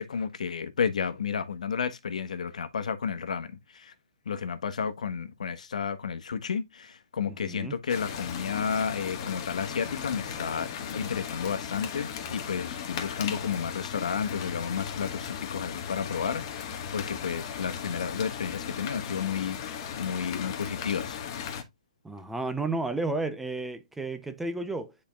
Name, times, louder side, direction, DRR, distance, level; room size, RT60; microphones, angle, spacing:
voice 1, 0.0-3.9 4.2-21.2, left 6 dB, 75° left, 1.2 m, -32 dB
voice 2, 7.4-7.7 22.0-25.0, right 2 dB, 5° right, 0.6 m, -32 dB
sound 1, 7.9-21.6, left 7 dB, 35° left, 1.4 m, -37 dB
10.0 x 4.4 x 2.3 m
hypercardioid pair, 155°, 4 cm